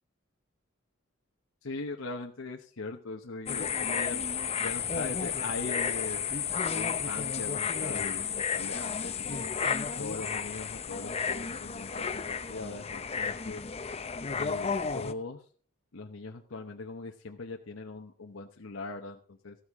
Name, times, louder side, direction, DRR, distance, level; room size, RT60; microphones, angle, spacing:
voice 1, 1.6-4.3 4.6-6.2 6.7-9.5 10.0-13.6 14.4-15.4 15.9-19.6, left 3 dB, 90° left, 3 dB, 0.9 m, -40 dB
sound 1, 3.5-15.1, left 6 dB, 30° left, 0.6 m, -32 dB
14.5 x 13.0 x 3.6 m, 0.43 s
head